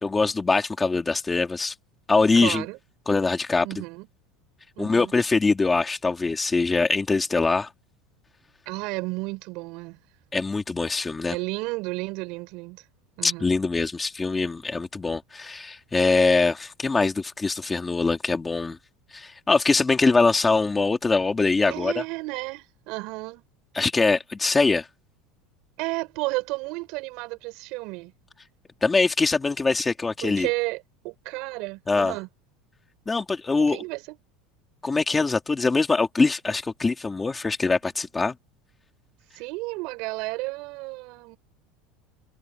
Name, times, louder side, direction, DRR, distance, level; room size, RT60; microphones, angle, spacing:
voice 1, 0.0-1.7 2.1-2.6 3.1-3.7 4.8-7.7 10.3-11.3 13.2-18.8 19.1-21.9 23.7-24.9 28.8-30.5 31.9-32.1 33.1-33.8 34.8-38.3, left 3 dB, 10° left, 2.4 m, -23 dB
voice 2, 2.3-2.8 3.6-4.1 4.8-5.1 8.7-10.0 11.3-12.8 13.2-13.5 21.6-23.4 25.8-28.1 30.2-32.3 33.5-34.2 39.3-41.4, right 24 dB, 55° right, 7.6 m, -32 dB
supercardioid pair, 155°, 0 cm